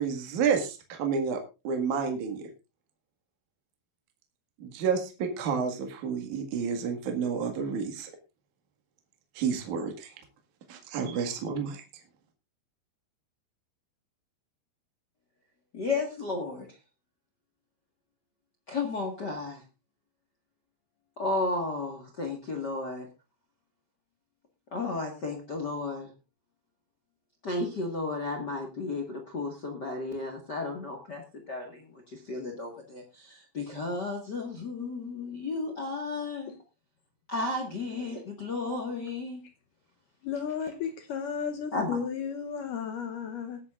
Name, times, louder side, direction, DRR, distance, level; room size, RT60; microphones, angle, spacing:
voice 1, 0.0-1.4 1.6-2.5 4.6-8.1 9.4-10.1 10.7-11.8, right 6 dB, 55° right, 4 dB, 2.9 m, -30 dB
voice 2, 15.7-16.6 18.7-19.6 21.2-23.1 24.7-26.1 27.4-31.9 32.3-36.5 37.3-39.4 41.7-42.0, left 3 dB, 45° left, 3 dB, 1.3 m, -33 dB
voice 3, 40.2-43.6, left 7 dB, 70° left, 6 dB, 2.2 m, -34 dB
20.5 x 10.0 x 2.5 m, 0.28 s
omnidirectional pair, 4.7 m